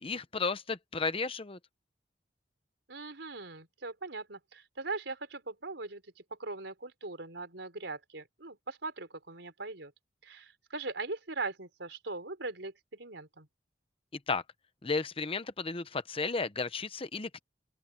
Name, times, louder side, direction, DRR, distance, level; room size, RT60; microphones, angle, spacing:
voice 1, 0.0-1.6 14.3-14.4 14.8-17.4, left 4 dB, 30° left, 0.9 m, -33 dB
voice 2, 2.9-9.9 10.2-13.5, right 3 dB, 85° right, 4.3 m, -40 dB
open air
head